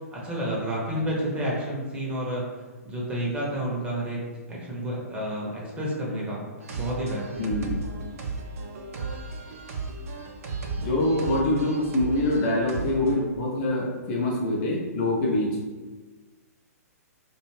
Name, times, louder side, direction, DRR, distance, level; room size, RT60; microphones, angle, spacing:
voice 1, 0.1-2.4 2.8-6.4 6.7-7.5, right 1 dB, 15° right, -4 dB, 0.6 m, -30 dB
sound 1, 6.6-13.2, right 3 dB, 60° right, 0.5 m, -35 dB
voice 2, 7.4-7.8 10.8-15.6, left 1 dB, 40° left, -3 dB, 0.5 m, -25 dB
2.4 x 2.2 x 3.1 m, 1.3 s
figure-of-eight pair, 120°, 9 cm